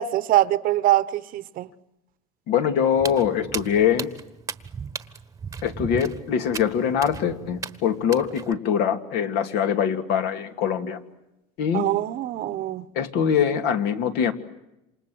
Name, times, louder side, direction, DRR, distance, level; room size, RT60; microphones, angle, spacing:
voice 1, 0.0-1.7 11.7-12.8, right 14 dB, 50° right, 1.1 m, -23 dB
voice 2, 2.5-4.1 5.6-11.0 11.6-11.9 12.9-14.3, left 8 dB, 65° left, 2.5 m, -23 dB
Walk footsteps, 2.9-8.5, right 5 dB, 20° right, 1.3 m, -36 dB
28.0 x 27.0 x 7.9 m
supercardioid pair, 125°, 18 cm